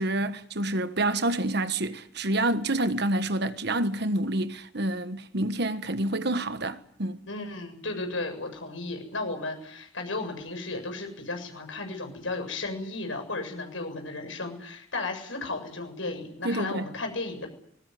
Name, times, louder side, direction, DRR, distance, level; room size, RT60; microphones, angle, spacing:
voice 1, 0.0-7.2 16.4-16.9, right 1 dB, 60° right, 1.5 m, -28 dB
voice 2, 7.3-17.5, left 3 dB, 85° left, 7.5 m, -34 dB
21.5 x 20.0 x 9.4 m
head